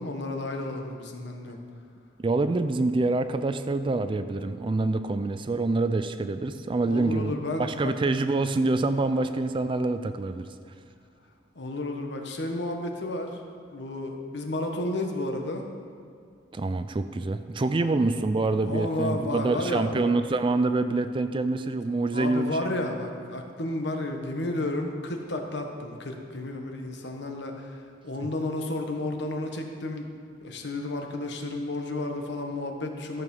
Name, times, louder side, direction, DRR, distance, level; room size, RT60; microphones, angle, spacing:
voice 1, 0.0-1.6 6.9-7.9 9.0-9.1 11.5-13.4 13.7-15.7 17.8-18.0 18.6-20.1 22.1-30.1 30.4-33.2, left 2 dB, 65° left, 3 dB, 1.2 m, -32 dB
voice 2, 2.2-7.3 7.6-10.5 16.5-22.6, right 3 dB, 25° right, 10 dB, 0.3 m, -26 dB
13.5 x 6.8 x 5.4 m, 2.3 s
head